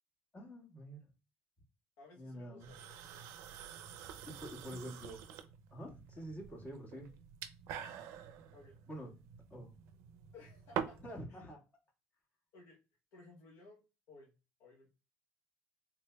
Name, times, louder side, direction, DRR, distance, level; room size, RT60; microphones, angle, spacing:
voice 1, 0.3-1.0 2.2-2.7 4.4-5.2 5.7-7.1 8.9-9.1 9.5-9.7 11.0-11.6, equal, 35° left, 0 dB, 1.6 m, -46 dB
voice 2, 2.0-3.3 4.6-4.9 6.1-6.2 7.0-7.3 7.7-7.9 8.5-8.8 10.3-11.0 11.3-11.5 12.5-12.8 13.1-13.8 14.1-14.3 14.6-14.9, left 3 dB, 80° left, 0 dB, 0.9 m, -58 dB
sound 1, 2.6-11.2, right 9 dB, 75° right, 0.5 m, -47 dB
3.6 x 3.1 x 2.2 m, 0.31 s
supercardioid pair, 95°, 5 cm